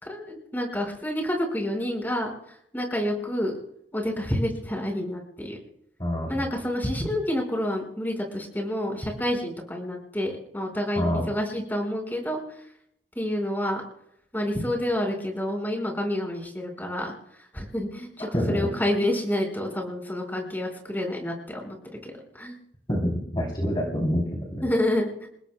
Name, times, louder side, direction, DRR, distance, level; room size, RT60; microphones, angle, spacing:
voice 1, 0.0-3.6 3.9-5.6 6.3-12.6 13.1-13.8 14.3-17.1 17.4-22.5 24.6-25.3, left 1 dB, 10° left, 1 dB, 5.0 m, -29 dB
voice 2, 6.0-6.4 11.0-11.3 18.3-18.7 22.9-24.7, equal, 25° left, -2 dB, 3.4 m, -26 dB
29.5 x 17.5 x 2.2 m, 0.71 s
head